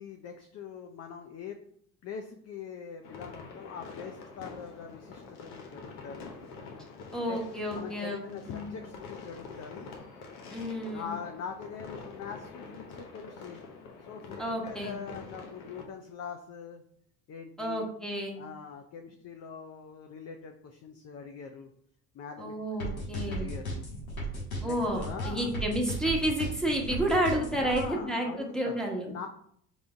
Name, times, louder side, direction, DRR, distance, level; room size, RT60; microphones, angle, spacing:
voice 1, 0.0-1.6 2.0-6.3 7.3-7.4 7.7-9.9 10.9-13.6 14.0-16.8 17.3-17.8 18.4-21.7 22.1-22.5 22.8-23.9 24.6-25.5 27.6-29.3, left 6 dB, 40° left, 4 dB, 0.5 m, -43 dB
sound 1, 3.0-15.8, left 4 dB, 65° left, 1.0 m, -46 dB
voice 2, 7.1-8.7 10.5-11.2 14.4-15.0 17.6-18.4 22.4-23.5 24.6-29.1, right 1 dB, ahead, -2 dB, 1.2 m, -31 dB
sound 2, 22.8-27.8, equal, 85° left, 1.3 m, -35 dB
3.8 x 3.5 x 3.5 m, 0.66 s
hypercardioid pair, 65°, 41 cm